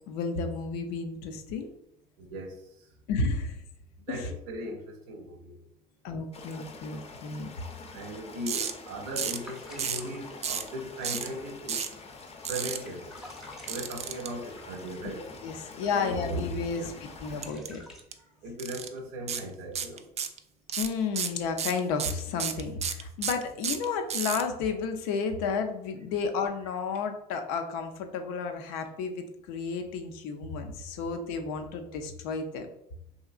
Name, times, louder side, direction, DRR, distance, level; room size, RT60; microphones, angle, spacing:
voice 1, 0.0-1.7 3.1-3.6 4.1-4.3 6.0-7.5 15.2-17.8 20.8-32.7, left 4 dB, 80° left, 0.5 m, -32 dB
voice 2, 2.2-2.5 4.1-5.6 7.9-11.8 12.5-13.1 13.7-15.3 15.9-16.4 16.7-16.9 18.4-20.1, right 1 dB, 80° right, 0.6 m, -38 dB
sound 1, 6.3-17.5, left 4 dB, 30° left, 0.6 m, -46 dB
sound 2, 8.5-8.7 9.2-9.5 9.8-10.1 10.4-10.7 11.0-11.3 11.7-11.9 12.4-12.8 13.7-14.3 17.4-17.7 18.0-18.1 18.6-18.9 19.3-19.4 19.7-20.4 20.7-24.4, right 7 dB, 35° right, 0.3 m, -31 dB
Washing Feet in water, 9.4-15.1 15.6-15.8 16.1-18.0, left 1 dB, ahead, 0.7 m, -52 dB
2.8 x 2.7 x 2.4 m
hypercardioid pair, 65°, 19 cm